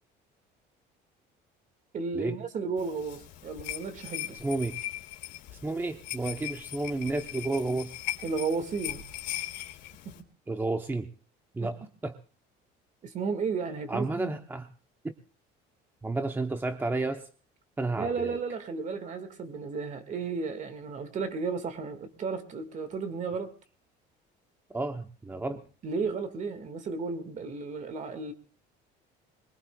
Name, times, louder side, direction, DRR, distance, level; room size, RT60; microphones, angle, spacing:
voice 1, 1.9-4.4 8.2-9.0 10.1-10.2 11.6-11.7 13.0-14.4 18.0-23.5 25.5-25.6 25.8-28.3, right 4 dB, 40° right, 10 dB, 1.7 m, -33 dB
sound 1, 2.8-10.2, left 14 dB, 80° left, 2.6 m, -39 dB
voice 2, 4.3-4.8 5.5-7.9 10.5-11.1 11.5-11.8 12.0-12.1 13.9-14.7 15.0-15.1 16.0-17.3 17.8-18.4 24.7-25.6, right 2 dB, 10° right, 7 dB, 0.7 m, -31 dB
22.0 x 20.5 x 2.2 m, 0.38 s
cardioid pair, 130°, 19 cm